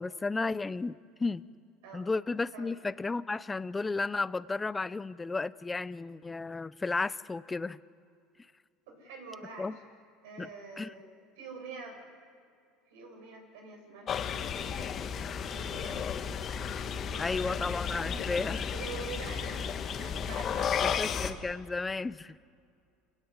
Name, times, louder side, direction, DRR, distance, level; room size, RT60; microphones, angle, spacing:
voice 1, 0.0-1.5 1.9-7.8 9.6-9.8 10.4-10.5 10.8-10.9 17.2-18.6 20.8-22.4, left 3 dB, 15° left, 16 dB, 0.5 m, -33 dB
voice 2, 8.9-9.8 10.2-11.1 11.4-12.0 12.9-15.1 15.6-17.6 17.9-21.3, right 3 dB, 85° right, 2 dB, 7.0 m, -46 dB
sound 1, 14.1-21.3, left 7 dB, 40° left, 1.6 m, -33 dB
28.0 x 17.0 x 8.3 m, 2.4 s
supercardioid pair, 110°, 0 cm